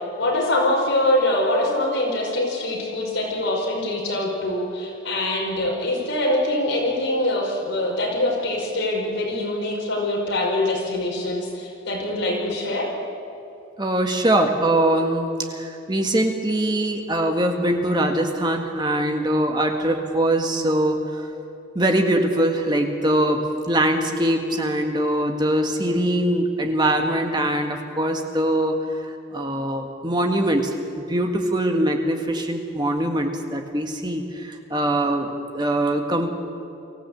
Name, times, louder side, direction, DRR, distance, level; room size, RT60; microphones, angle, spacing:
voice 1, 0.2-12.9, left 1 dB, 70° left, -1 dB, 5.3 m, -24 dB
voice 2, 13.8-21.0 21.7-23.4 23.7-28.7 29.3-30.7 31.0-35.3 35.5-36.4, right 1 dB, 20° right, 3 dB, 1.7 m, -22 dB
24.0 x 15.0 x 8.6 m, 2.7 s
head